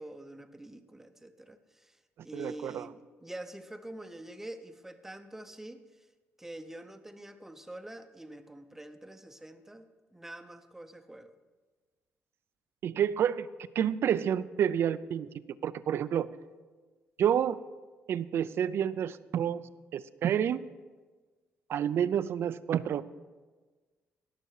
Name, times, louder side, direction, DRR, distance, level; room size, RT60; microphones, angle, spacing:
voice 1, 0.0-2.0 2.2-6.1 6.4-11.3, right 1 dB, 5° right, 9 dB, 0.7 m, -46 dB
voice 2, 2.3-2.9 12.8-13.5 13.8-15.3 15.6-16.3 17.2-17.6 18.1-20.6 21.7-23.0, right 9 dB, 55° right, 16 dB, 0.4 m, -29 dB
17.5 x 6.7 x 4.7 m, 1.4 s
cardioid pair, 125°, 5 cm